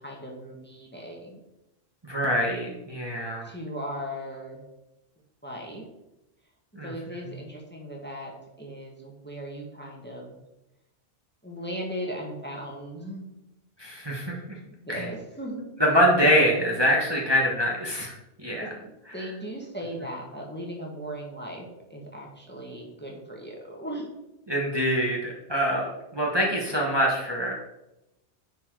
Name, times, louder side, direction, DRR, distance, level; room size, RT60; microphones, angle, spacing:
voice 1, 0.0-1.4 3.4-4.6 5.4-5.8 6.8-8.3 8.6-10.4 11.4-13.3 14.7-15.6 18.5-24.1, equal, 10° left, -1 dB, 1.5 m, -37 dB
voice 2, 2.0-3.5 6.7-6.9 13.8-14.3 14.9-15.1 15.8-18.1 18.4-18.7 24.5-27.5, equal, 20° right, -2 dB, 1.3 m, -24 dB
10.0 x 4.5 x 4.7 m, 0.94 s
omnidirectional pair, 1.2 m